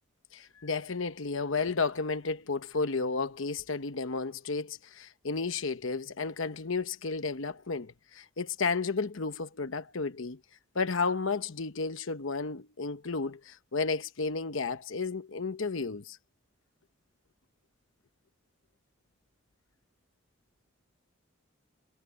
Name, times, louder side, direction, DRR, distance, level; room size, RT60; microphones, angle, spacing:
voice 1, 0.3-10.4 10.7-16.2, left 4 dB, 70° left, 1.0 m, -32 dB
head